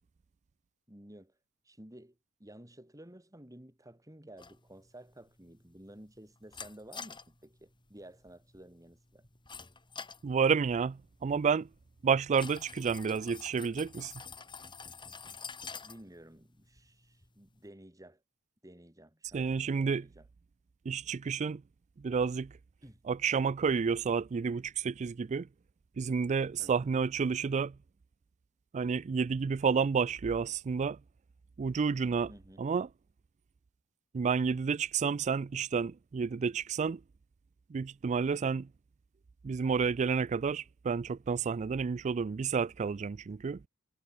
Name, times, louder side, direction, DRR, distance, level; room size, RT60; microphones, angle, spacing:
voice 1, 0.9-1.3 1.6-9.2 15.8-18.2 18.6-20.3 22.2-22.3 22.8-23.0 26.6-26.9 32.3-32.7, right 1 dB, 15° right, 3.3 m, -53 dB
sound 1, 4.4-17.7, left 5 dB, 20° left, 4.4 m, -50 dB
voice 2, 10.2-11.7 12.0-14.1 19.3-20.0 20.9-21.6 22.0-22.5 23.1-25.5 26.0-27.8 28.7-31.0 31.6-32.3 32.6-32.9 34.1-37.0 37.7-38.7 39.4-43.6, right 5 dB, 30° right, 0.3 m, -30 dB
head